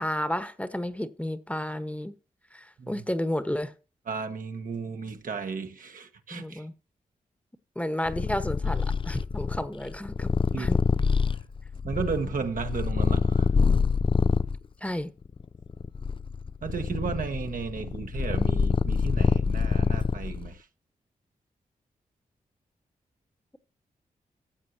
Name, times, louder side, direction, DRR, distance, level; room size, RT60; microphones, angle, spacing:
voice 1, 0.0-2.1 2.5-3.7 6.3-6.7 7.7-10.8 14.8-15.1, left 1 dB, 10° left, 1.1 m, -32 dB
voice 2, 4.1-6.7 10.5-11.1 11.8-13.5 16.6-20.7, right 5 dB, 65° right, 1.4 m, -34 dB
Purr, 8.1-14.6 15.3-20.5, left 5 dB, 35° left, 0.4 m, -26 dB
14.5 x 7.7 x 2.8 m
cardioid pair, 60°, 15 cm